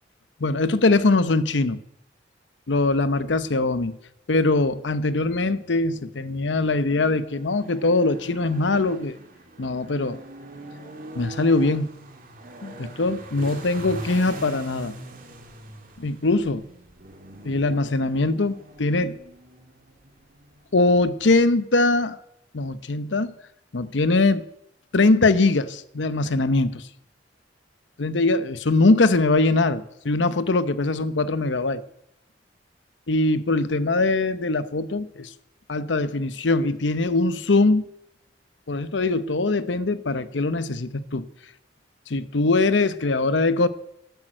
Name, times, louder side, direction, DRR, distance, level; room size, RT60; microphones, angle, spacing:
voice 1, 0.4-1.8 2.7-4.0 4.3-9.2 9.6-10.2 11.2-11.9 12.6-14.9 16.0-16.6 17.4-19.2 20.7-22.2 22.5-23.3 23.7-24.4 24.9-26.8 28.0-31.8 33.1-35.3 35.7-37.9 38.7-41.3 42.1-43.7, left 2 dB, 75° left, 0.8 m, -22 dB
sound 1, 5.1-21.6, right 1 dB, 50° right, 2.6 m, -43 dB
13.0 x 12.5 x 7.7 m
head